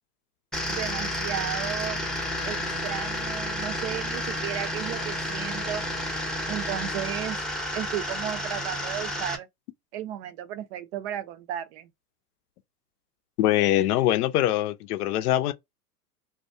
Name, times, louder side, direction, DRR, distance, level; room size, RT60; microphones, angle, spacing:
sound 1, 0.5-9.4, left 1 dB, ahead, 0.6 m, -31 dB
voice 1, 0.7-2.0 2.4-5.8 6.5-7.4 7.7-9.5 9.9-11.9, right 11 dB, 45° right, 0.5 m, -34 dB
voice 2, 13.4-15.5, left 13 dB, 70° left, 0.6 m, -23 dB
2.2 x 2.1 x 2.6 m
hypercardioid pair, 105°, 47 cm